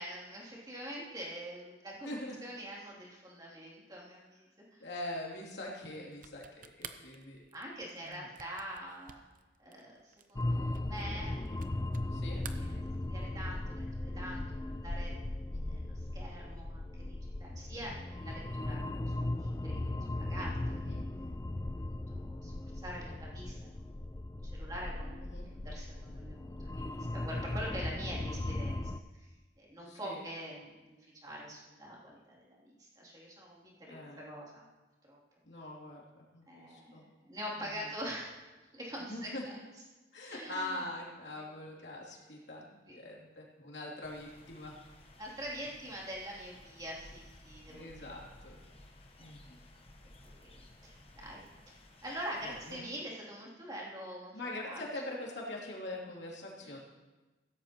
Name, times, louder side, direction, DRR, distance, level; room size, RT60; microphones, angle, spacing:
voice 1, 0.0-2.2 2.4-4.9 7.5-9.2 9.6-11.5 12.6-12.8 13.1-15.1 15.7-20.6 20.8-21.0 21.9-25.2 25.6-28.8 29.1-29.3 29.6-34.6 35.1-35.2 36.5-38.3 38.7-39.3 40.2-40.8 41.3-41.4 42.9-43.0 45.2-48.1 49.2-49.3 50.2-50.5 50.8-54.4 54.7-54.8 56.6-56.7, equal, 20° right, -4 dB, 3.0 m, -45 dB
voice 2, 2.0-2.4 4.8-7.4 8.0-8.3 12.1-12.4 15.5-15.8 20.7-21.0 25.2-25.5 29.9-30.2 33.9-34.3 35.4-37.0 37.6-37.9 39.0-39.4 40.1-44.7 47.7-48.6 49.2-49.6 52.4-52.8 54.3-56.8, left 1 dB, 80° left, -3 dB, 2.9 m, -43 dB
sound 1, 6.1-12.1 12.4-13.4, right 8 dB, 50° right, 0.7 m, -51 dB
sound 2, 10.4-29.0, left 1 dB, 15° left, 0.4 m, -37 dB
sound 3, 44.0-52.8, left 1 dB, 35° left, 1.1 m, -57 dB
16.0 x 13.5 x 3.0 m, 1.2 s
head